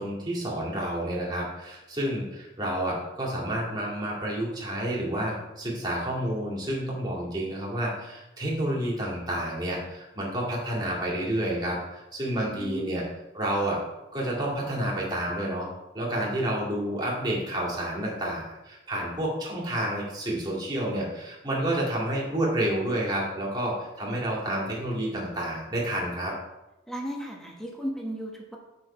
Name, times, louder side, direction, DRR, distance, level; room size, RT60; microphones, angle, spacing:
voice 1, 0.0-13.0 13.3-13.8 14.1-15.7 15.9-26.3, right 1 dB, 20° right, -4 dB, 2.2 m, -29 dB
voice 2, 12.3-12.9 26.9-28.6, equal, ahead, -1 dB, 1.1 m, -35 dB
7.9 x 5.7 x 4.4 m, 0.97 s
head